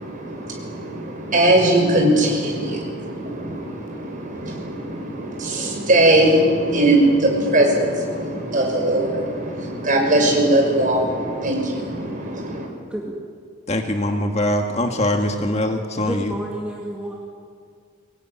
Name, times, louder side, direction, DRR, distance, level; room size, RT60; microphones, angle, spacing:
voice 1, 0.0-12.7, right 1 dB, 40° right, 0 dB, 6.3 m, -20 dB
voice 2, 13.7-16.3, left 1 dB, 30° left, 4 dB, 1.8 m, -22 dB
voice 3, 16.0-17.2, equal, 5° right, -2 dB, 2.2 m, -29 dB
25.0 x 19.5 x 9.9 m, 2.2 s
head